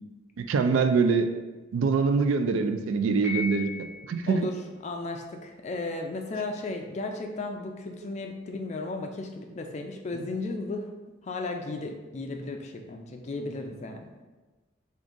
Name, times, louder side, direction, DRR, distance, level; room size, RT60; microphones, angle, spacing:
voice 1, 0.4-1.3 1.7-4.4, right 5 dB, 85° right, 7 dB, 0.3 m, -24 dB
Piano, 3.2-4.4, left 5 dB, 15° right, 0.9 m, -36 dB
voice 2, 4.8-10.9 11.2-14.1, left 2 dB, 35° left, 3 dB, 0.3 m, -35 dB
3.6 x 2.5 x 3.8 m, 1.2 s
head